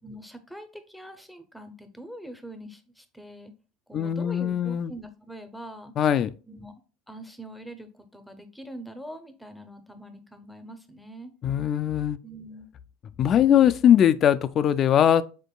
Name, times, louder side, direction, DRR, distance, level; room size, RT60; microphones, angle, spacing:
voice 1, 0.0-3.5 3.9-5.9 6.5-6.7 7.1-11.3 12.2-12.7, right 1 dB, 5° left, 0.6 m, -43 dB
voice 2, 3.9-4.9 6.0-6.3 11.4-12.2 13.2-15.2, left 9 dB, 40° left, 0.3 m, -20 dB
5.2 x 3.8 x 2.2 m
supercardioid pair, 120°, 0 cm